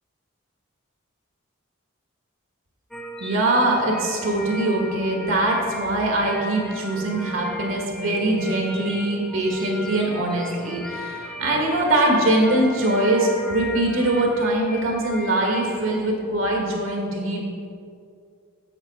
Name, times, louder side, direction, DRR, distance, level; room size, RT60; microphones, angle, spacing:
sound 1, 2.9-16.0, equal, ahead, 0.4 m, -36 dB
voice 1, 3.2-17.4, right 1 dB, 75° right, 0 dB, 1.8 m, -22 dB
8.0 x 7.5 x 4.4 m, 2.3 s
head